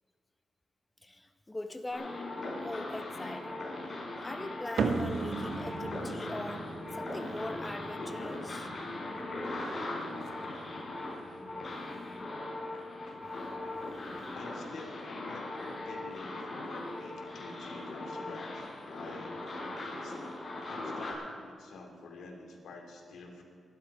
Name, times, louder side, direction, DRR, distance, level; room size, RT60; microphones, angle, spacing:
voice 1, 1.0-2.2 2.6-3.6 4.2-8.7 9.4-9.5 11.7-12.3 13.2-14.4, left 1 dB, 15° left, 6 dB, 1.3 m, -42 dB
sound 1, 1.9-21.1, left 2 dB, 35° left, 5.5 m, -39 dB
sound 2, 4.8-11.5, right 4 dB, 70° right, 1.2 m, -38 dB
voice 2, 14.3-20.2 20.6-23.4, left 3 dB, 90° left, 1 dB, 3.1 m, -48 dB
24.5 x 11.5 x 5.0 m, 2.2 s
wide cardioid pair, 115°, 0 cm